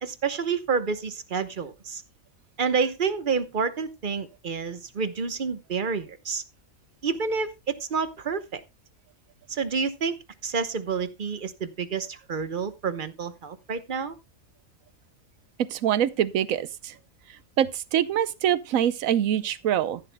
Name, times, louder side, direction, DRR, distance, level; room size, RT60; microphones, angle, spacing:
voice 1, 0.0-2.0 2.6-6.4 7.0-8.6 9.5-14.2, right 5 dB, 40° right, 1.0 m, -29 dB
voice 2, 15.7-16.9 17.6-20.0, right 10 dB, 85° right, 1.1 m, -24 dB
14.0 x 11.5 x 2.2 m
omnidirectional pair, 1.4 m